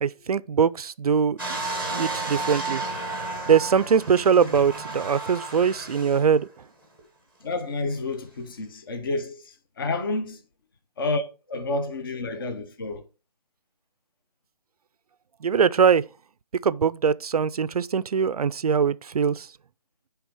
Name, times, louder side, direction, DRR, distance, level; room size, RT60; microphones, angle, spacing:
voice 1, 0.0-1.4 1.9-2.8 3.5-6.5 15.4-16.0 16.6-19.5, right 6 dB, 60° right, 0.5 m, -22 dB
sound 1, 1.4-6.4 7.0-7.1, right 3 dB, 5° left, 1.0 m, -32 dB
voice 2, 7.4-10.4 11.0-13.0, left 2 dB, 35° left, 0.8 m, -30 dB
9.1 x 3.5 x 4.6 m
hypercardioid pair, 165°, 21 cm